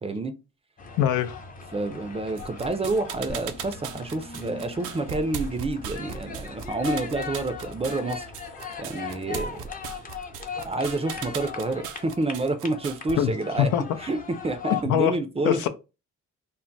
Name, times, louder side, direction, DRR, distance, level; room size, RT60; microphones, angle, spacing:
voice 1, 0.0-0.4 1.7-8.3 8.8-9.6 10.6-13.7 14.0-15.7, right 2 dB, 20° right, 0.4 m, -28 dB
sound 1, 0.8-14.8, left 7 dB, 30° left, 0.6 m, -39 dB
voice 2, 1.0-1.4 13.2-13.3 13.6-13.8 14.9-15.1 15.4-15.7, left 10 dB, 90° left, 0.5 m, -22 dB
sound 2, 2.4-13.1, right 8 dB, 90° right, 0.5 m, -38 dB
sound 3, 3.3-6.6, left 1 dB, 45° left, 0.9 m, -45 dB
2.3 x 2.1 x 3.9 m
cardioid pair, 90°, 30 cm